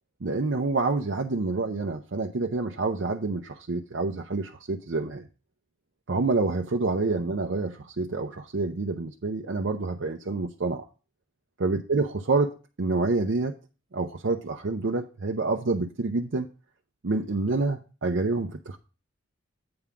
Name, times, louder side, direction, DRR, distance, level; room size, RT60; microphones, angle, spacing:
voice 1, 0.2-5.3 6.1-10.8 11.6-13.5 13.9-16.5 17.0-18.8, right 3 dB, 60° right, 0.6 m, -27 dB
8.7 x 3.6 x 6.9 m
head